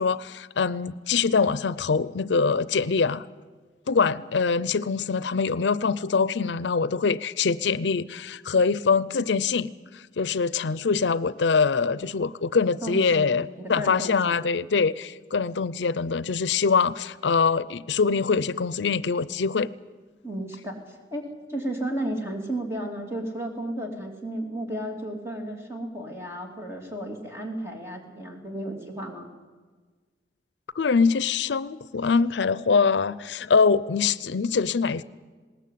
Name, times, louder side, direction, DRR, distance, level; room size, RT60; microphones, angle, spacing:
voice 1, 0.0-3.2 3.9-19.7 30.8-35.0, left 5 dB, 85° left, 18 dB, 0.5 m, -24 dB
voice 2, 12.8-14.4 20.2-29.3, right 1 dB, 15° right, 1 dB, 2.9 m, -33 dB
20.5 x 18.0 x 8.4 m, 1.4 s
head